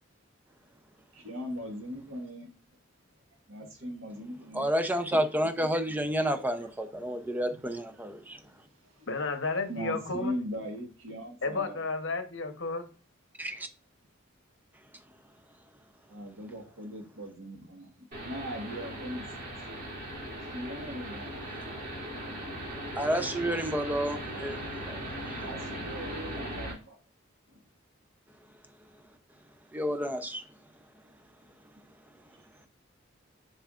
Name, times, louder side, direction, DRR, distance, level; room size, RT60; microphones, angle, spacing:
voice 1, 1.1-2.5 3.5-4.7 6.6-6.7 7.0-7.2 8.2-9.1 9.7-11.8 16.1-17.9 18.2-19.2 20.4-21.3 25.4-27.0 27.5-27.6, equal, 80° right, 1.6 m, -40 dB
voice 2, 4.5-8.4 13.4-13.7 22.9-25.0 25.3-25.4 29.7-30.4, equal, 10° right, 0.6 m, -30 dB
voice 3, 9.1-10.4 11.4-12.9, left 3 dB, 70° left, 1.0 m, -32 dB
sound 1, 18.1-26.7, equal, 50° right, 2.7 m, -38 dB
6.9 x 5.5 x 2.5 m
head